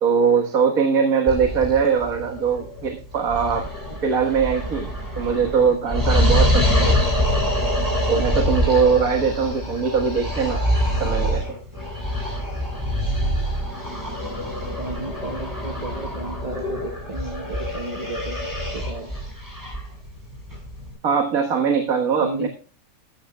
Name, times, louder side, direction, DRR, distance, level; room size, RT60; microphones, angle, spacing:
voice 1, 0.0-3.7 4.0-7.1 8.1-10.6 11.0-11.6 21.0-22.5, right 6 dB, 55° right, 4 dB, 1.8 m, -21 dB
sound 1, 1.3-20.9, equal, 10° right, 6.3 m, -25 dB
voice 2, 5.4-5.7 14.8-19.1 22.2-22.5, right 2 dB, 30° right, 4 dB, 0.8 m, -33 dB
14.0 x 12.5 x 2.2 m, 0.38 s
omnidirectional pair, 1.8 m